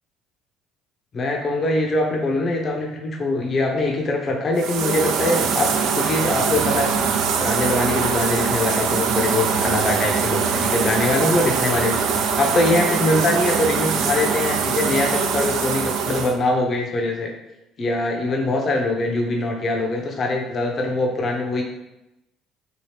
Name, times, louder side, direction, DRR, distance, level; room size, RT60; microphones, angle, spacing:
voice 1, 1.1-7.1 7.4-17.3 17.8-21.6, left 2 dB, 45° left, 2 dB, 0.7 m, -23 dB
sound 1, 4.6-16.3, right 6 dB, 70° right, 0.3 m, -22 dB
2.8 x 2.7 x 3.3 m, 0.92 s
hypercardioid pair, 70°, 0 cm